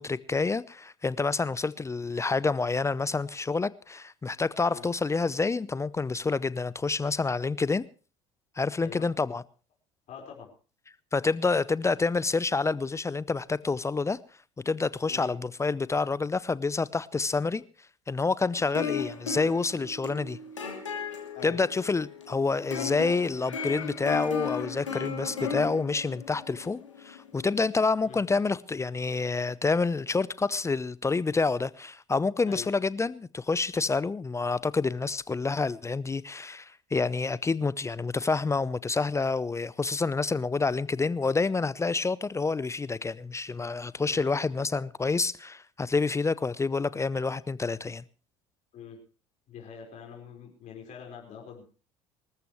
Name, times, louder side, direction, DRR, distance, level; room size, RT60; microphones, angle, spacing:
voice 1, 0.0-7.8 8.6-9.4 11.1-14.2 14.7-17.6 18.1-20.4 21.4-48.0, left 4 dB, 20° left, 0.7 m, -28 dB
voice 2, 10.1-10.5 15.1-15.3 21.3-21.6 28.0-28.2 32.4-32.7 44.0-44.2 48.7-49.0 49.5-51.6, left 7 dB, 50° left, 4.8 m, -44 dB
sound 1, 18.5-27.8, left 6 dB, 90° left, 2.8 m, -36 dB
25.0 x 14.0 x 3.1 m
hypercardioid pair, 60°, 15 cm